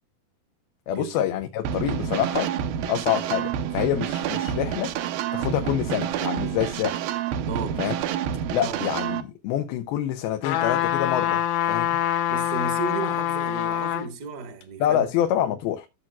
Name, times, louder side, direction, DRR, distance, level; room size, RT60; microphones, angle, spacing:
voice 1, 0.9-2.5 2.9-4.9 5.3-7.0 7.8-8.0 8.5-11.4 11.7-11.9 14.8-15.9, left 11 dB, 85° left, 2.7 m, -26 dB
sound 1, 1.6-9.2, right 9 dB, 80° right, 2.5 m, -28 dB
voice 2, 7.4-7.8 8.6-8.9 12.3-15.0, right 4 dB, 55° right, 1.1 m, -34 dB
sound 2, 10.4-14.1 14.6-14.7, left 10 dB, 65° left, 2.4 m, -25 dB
15.5 x 7.2 x 2.3 m
omnidirectional pair, 4.3 m